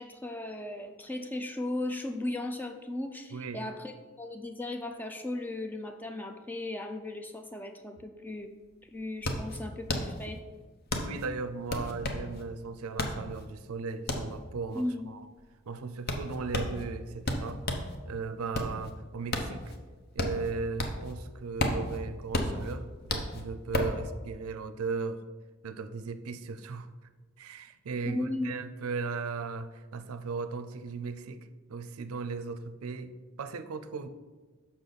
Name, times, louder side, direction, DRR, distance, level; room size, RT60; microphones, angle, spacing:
voice 1, 0.0-8.5 8.9-10.4 14.7-15.1 28.1-28.5, left 1 dB, 10° left, 5 dB, 0.4 m, -36 dB
voice 2, 3.3-3.7 11.0-15.3 15.7-17.6 18.0-19.7 20.1-25.2 25.6-26.9 27.4-34.1, right 4 dB, 85° right, 11 dB, 0.5 m, -37 dB
sound 1, 8.3-8.4 8.6-17.9 18.3-21.2 21.4-24.0, left 2 dB, 45° left, 0.7 m, -33 dB
6.7 x 5.8 x 4.0 m, 1.3 s
head